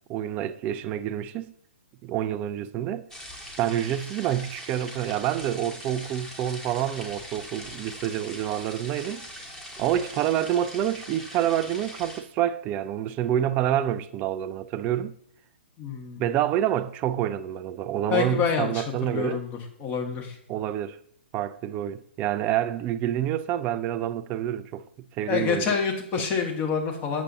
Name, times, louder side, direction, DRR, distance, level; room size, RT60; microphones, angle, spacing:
voice 1, 0.1-1.5 2.0-3.1 3.6-9.3 9.8-15.1 16.2-19.4 20.5-21.0 21.3-24.8 25.2-25.7 26.2-26.3, right 11 dB, 25° right, 0.4 m, -27 dB
sound 1, 3.1-12.2, equal, 5° left, 1.6 m, -42 dB
voice 2, 15.8-16.2 18.1-19.5 19.8-20.4 25.3-27.2, left 6 dB, 30° left, 1.6 m, -27 dB
8.2 x 6.9 x 2.8 m
figure-of-eight pair, 120°, 6 cm